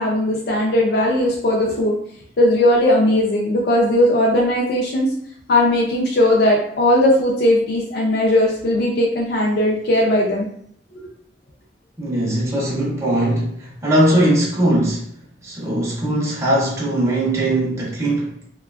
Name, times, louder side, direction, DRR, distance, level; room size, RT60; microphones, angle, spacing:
voice 1, 0.0-1.9 2.4-5.1 5.5-10.5 10.9-11.1, left 1 dB, 60° left, -2 dB, 0.4 m, -18 dB
voice 2, 12.0-18.3, right 1 dB, 15° right, -5 dB, 0.5 m, -20 dB
2.6 x 2.2 x 2.3 m, 0.66 s
head